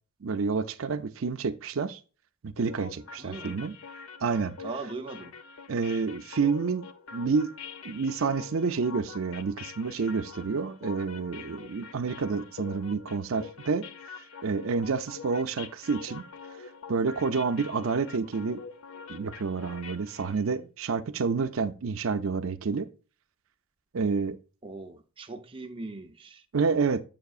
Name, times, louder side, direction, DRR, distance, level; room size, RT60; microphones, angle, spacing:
voice 1, 0.2-2.0 2.4-3.7 4.2-4.5 5.7-6.8 7.1-7.5 7.8-13.8 14.4-16.2 16.9-18.6 19.1-22.9 23.9-24.4 26.5-27.0, right 5 dB, 75° right, 0.5 m, -29 dB
sound 1, 2.6-20.4, left 5 dB, 80° left, 0.6 m, -45 dB
voice 2, 3.2-3.6 4.6-5.3 24.6-26.4, right 3 dB, 25° right, 0.6 m, -40 dB
7.3 x 5.7 x 2.4 m
head